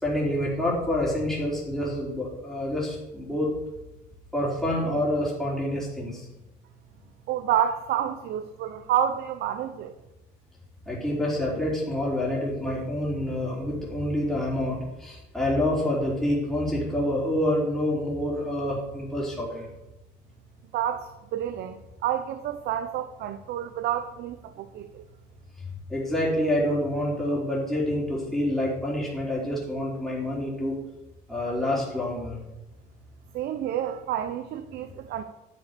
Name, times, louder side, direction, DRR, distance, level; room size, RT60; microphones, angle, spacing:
voice 1, 0.0-3.5 4.3-6.3 10.9-19.7 25.9-30.8 31.3-32.4, left 1 dB, ahead, -6 dB, 4.2 m, -27 dB
voice 2, 7.3-9.9 20.7-25.1 33.3-35.2, right 10 dB, 75° right, 10 dB, 0.8 m, -29 dB
11.0 x 7.1 x 6.9 m, 0.98 s
cardioid pair, 110°, 17 cm